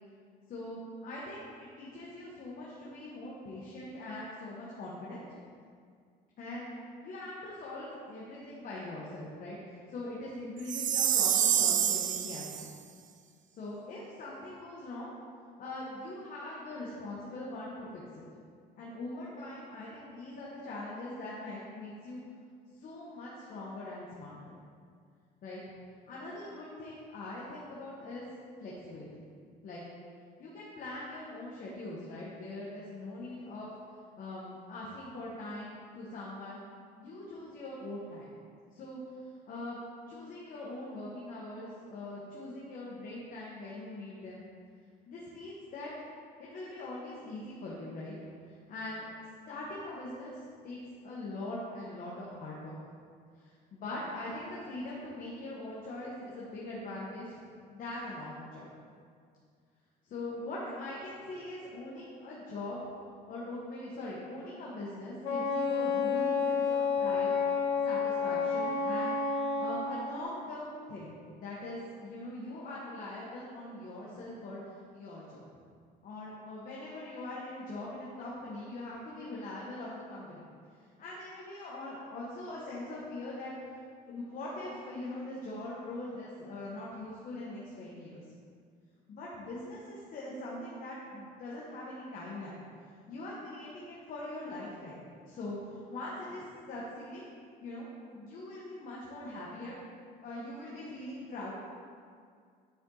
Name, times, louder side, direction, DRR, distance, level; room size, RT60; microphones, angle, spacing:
voice 1, 0.5-5.2 6.4-6.7 7.0-12.7 13.5-15.1 15.6-18.2 18.8-22.2 22.8-24.5 25.4-25.6 26.1-28.2 28.6-29.1 29.6-29.8 30.4-33.7 34.2-36.6 37.0-38.3 38.7-39.0 39.5-39.8 40.1-44.5 45.1-45.9 46.4-48.1 48.5-49.1 49.5-52.7 53.4-57.4 57.7-58.7 60.0-62.8 63.3-67.3 67.8-69.2 69.6-74.6 74.9-75.4 76.0-80.5 81.0-83.5 84.1-88.2 89.1-92.6 93.1-97.2 97.6-97.9 98.1-99.8 100.2-101.5, left 2 dB, 55° left, -6 dB, 1.4 m, -42 dB
Chime, 10.7-12.7, right 9 dB, 50° right, 0.4 m, -27 dB
Wind instrument woodwind instrument, 65.2-69.8, left 5 dB, 70° left, 1.6 m, -30 dB
9.5 x 4.5 x 4.0 m, 2.1 s
cardioid pair, 110°, 17 cm